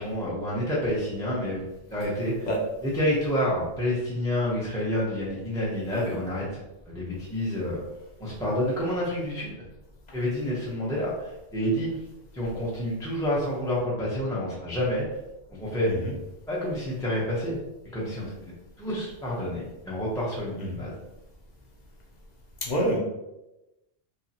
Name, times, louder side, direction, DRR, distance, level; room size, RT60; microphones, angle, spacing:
voice 1, 0.0-1.6 1.9-2.5 2.8-6.5 6.9-7.8 8.2-9.5 10.1-12.0 12.3-15.1 15.5-15.9 16.5-17.6 17.8-18.3 18.8-20.9, equal, 5° left, -7 dB, 0.5 m, -28 dB
voice 2, 22.6-23.0, equal, 45° left, -1 dB, 0.6 m, -27 dB
2.9 x 2.7 x 2.7 m, 0.95 s
omnidirectional pair, 1.2 m